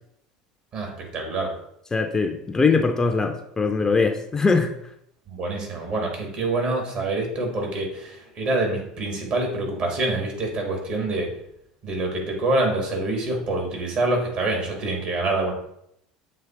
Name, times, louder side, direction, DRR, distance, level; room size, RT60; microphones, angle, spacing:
voice 1, 0.7-1.5 5.3-11.3 11.8-15.5, right 2 dB, 50° right, 1 dB, 2.3 m, -26 dB
voice 2, 1.9-4.7, left 4 dB, 20° left, 6 dB, 0.6 m, -21 dB
7.3 x 3.2 x 4.5 m, 0.75 s
hypercardioid pair, 70°, 3 cm